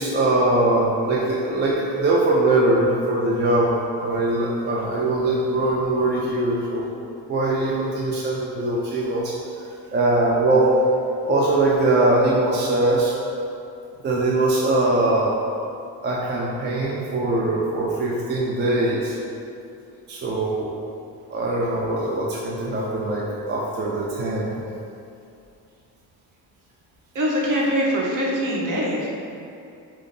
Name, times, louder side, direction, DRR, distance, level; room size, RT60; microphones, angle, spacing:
voice 1, 0.0-6.8 7.3-9.3 9.9-10.7 11.3-13.1 14.0-15.3 16.0-19.2 20.1-20.7 21.3-24.6, right 2 dB, 25° right, -5 dB, 0.4 m, -21 dB
voice 2, 27.1-29.1, equal, 45° right, -4 dB, 0.9 m, -23 dB
4.9 x 2.0 x 2.6 m, 2.6 s
supercardioid pair, 85°, 43 cm